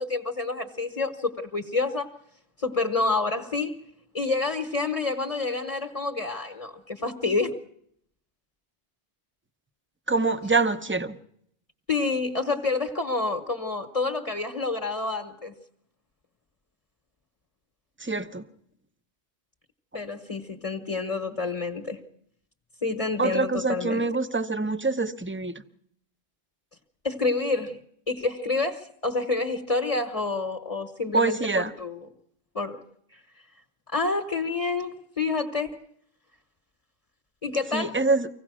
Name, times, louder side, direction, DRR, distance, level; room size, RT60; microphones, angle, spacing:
voice 1, 0.0-2.1 2.6-3.8 4.1-7.6 11.9-15.5 19.9-22.0 22.8-24.1 27.0-27.8 28.1-32.1 32.5-32.8 33.9-35.9 37.4-38.0, left 3 dB, 35° left, 1.2 m, -28 dB
voice 2, 10.1-11.2 18.0-18.4 23.2-25.6 31.1-31.7 37.7-38.3, right 3 dB, 10° right, 0.7 m, -25 dB
25.0 x 17.0 x 6.2 m
omnidirectional pair, 1.1 m